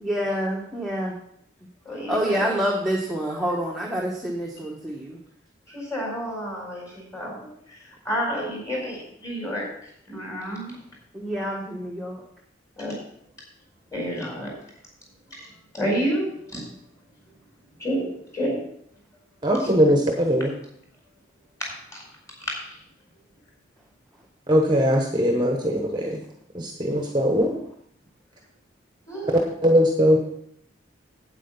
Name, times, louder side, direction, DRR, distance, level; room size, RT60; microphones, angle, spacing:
voice 1, 0.0-1.2 2.1-5.2 11.1-12.2, equal, ahead, -3 dB, 1.2 m, -27 dB
voice 2, 1.8-2.3 5.7-10.8 12.8-13.0 13.9-14.5 15.4-15.5 15.7-16.6 17.8-18.1 18.3-18.6 19.6-19.7 21.6-22.0 22.5-22.8 29.1-29.3, equal, 15° left, -2 dB, 4.3 m, -30 dB
voice 3, 19.4-20.5 24.5-26.2 26.5-27.5 29.6-30.2, equal, 20° right, 1 dB, 1.1 m, -20 dB
8.8 x 8.4 x 5.4 m, 0.70 s
head